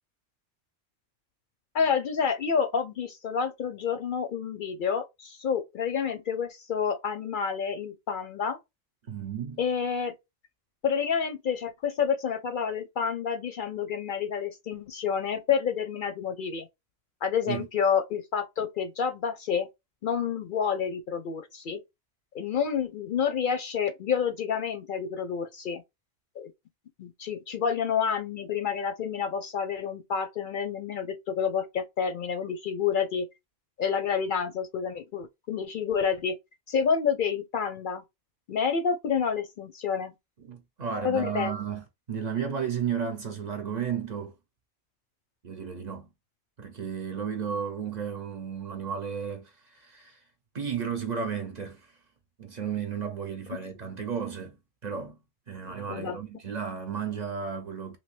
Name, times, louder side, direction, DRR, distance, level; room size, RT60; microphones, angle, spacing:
voice 1, 1.7-8.6 9.6-10.1 10.8-16.7 17.2-19.7 20.0-21.8 22.3-25.8 26.4-26.5 27.0-33.3 33.8-36.4 36.7-38.0 38.5-40.1 41.0-41.5 55.9-56.2, left 7 dB, 60° left, 0.6 m, -29 dB
voice 2, 9.1-9.6 17.5-17.7 40.4-44.4 45.4-46.1 46.6-50.2 50.5-51.9 52.4-54.6 54.8-55.2 55.5-58.0, right 7 dB, 45° right, 0.7 m, -33 dB
3.0 x 2.7 x 3.1 m
omnidirectional pair, 1.1 m